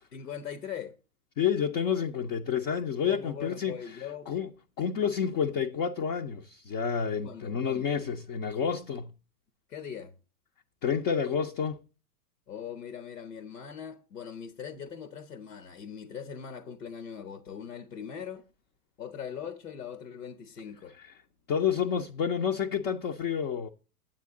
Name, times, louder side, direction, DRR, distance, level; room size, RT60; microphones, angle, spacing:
voice 1, 0.1-1.0 3.1-4.3 7.2-7.9 9.7-10.1 12.5-18.4 19.0-21.0, left 8 dB, 90° left, 1.1 m, -41 dB
voice 2, 1.4-4.5 4.8-9.1 10.8-11.8 21.0-21.1 21.5-23.7, left 7 dB, 25° left, 0.4 m, -29 dB
8.5 x 7.8 x 3.6 m
hypercardioid pair, 120°, 46 cm